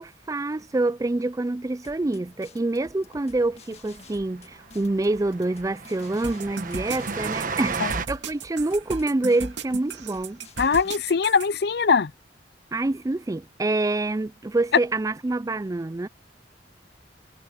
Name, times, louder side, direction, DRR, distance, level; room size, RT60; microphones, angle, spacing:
voice 1, 0.0-7.8 8.1-10.4 12.7-16.1, right 2 dB, 20° right, 0.4 m, -26 dB
sound 1, 1.8-10.9, left 3 dB, 35° left, 1.9 m, -51 dB
Train, 3.5-3.6 3.8-4.0 4.2-4.3 4.7-8.1, right 5 dB, 50° right, 1.4 m, -33 dB
sound 2, 6.2-11.5, right 4 dB, 85° right, 2.4 m, -35 dB
voice 2, 10.6-12.1, left 5 dB, 60° left, 0.6 m, -21 dB
head